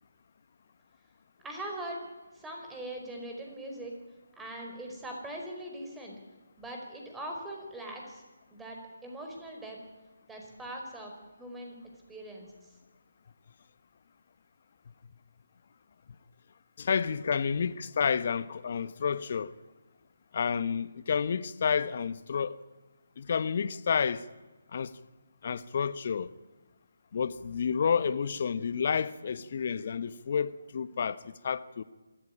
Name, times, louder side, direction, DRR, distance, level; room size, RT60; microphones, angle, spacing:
voice 1, 1.4-2.0 2.3-4.0 4.4-6.2 6.6-8.2 8.5-9.8 10.3-11.1 11.4-11.7 12.1-12.5, right 1 dB, 5° right, 5.0 m, -41 dB
voice 2, 16.8-19.5 20.3-22.6 23.2-24.2 24.7-24.9 25.4-26.3 27.1-31.8, left 6 dB, 45° left, 1.1 m, -30 dB
25.5 x 14.5 x 9.9 m
figure-of-eight pair, 150°, 0 cm